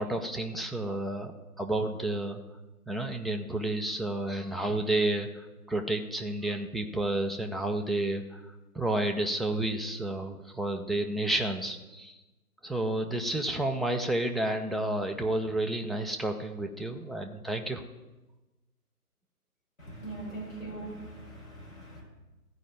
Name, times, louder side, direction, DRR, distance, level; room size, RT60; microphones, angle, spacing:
voice 1, 0.0-1.3 1.6-2.4 2.9-12.1 12.6-17.8, right 1 dB, ahead, 2 dB, 0.3 m, -31 dB
voice 2, 19.8-22.0, right 2 dB, 55° left, -4 dB, 5.0 m, -41 dB
13.5 x 4.9 x 8.4 m, 1.1 s
figure-of-eight pair, 140°, 46 cm